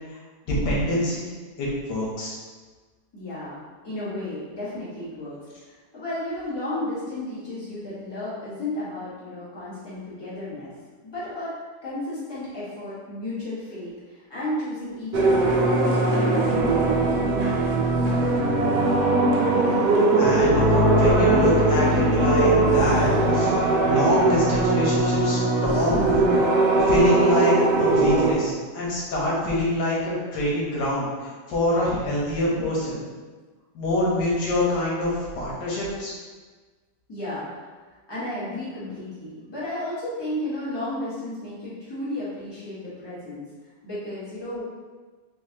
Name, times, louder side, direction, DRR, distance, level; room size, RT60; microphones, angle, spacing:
voice 1, 0.5-1.3 1.6-2.4 20.0-23.5 23.8-26.2 26.9-33.0 33.7-36.1, left 1 dB, 90° left, -5 dB, 1.5 m, -25 dB
voice 2, 3.1-10.7 11.0-11.5 11.8-17.3 37.1-37.4 37.9-43.4 43.8-44.6, left 1 dB, 15° left, -11 dB, 1.2 m, -33 dB
sound 1, 15.1-28.3, right 2 dB, 75° right, 1.1 m, -20 dB
4.1 x 2.7 x 2.7 m, 1.4 s
omnidirectional pair, 1.8 m